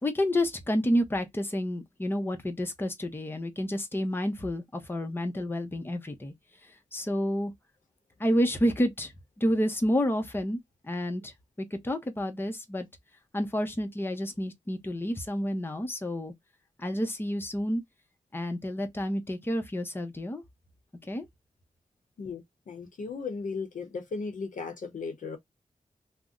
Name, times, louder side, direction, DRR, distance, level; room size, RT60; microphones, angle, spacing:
voice 1, 0.0-6.3 6.9-7.5 8.2-9.1 9.4-10.6 10.9-12.9 13.3-16.3 16.8-17.8 18.3-20.4 21.1-21.3, equal, 15° left, 0.7 m, -29 dB
voice 2, 22.7-25.4, left 4 dB, 85° left, 0.7 m, -36 dB
2.6 x 2.1 x 3.5 m
wide cardioid pair, 90°, 13 cm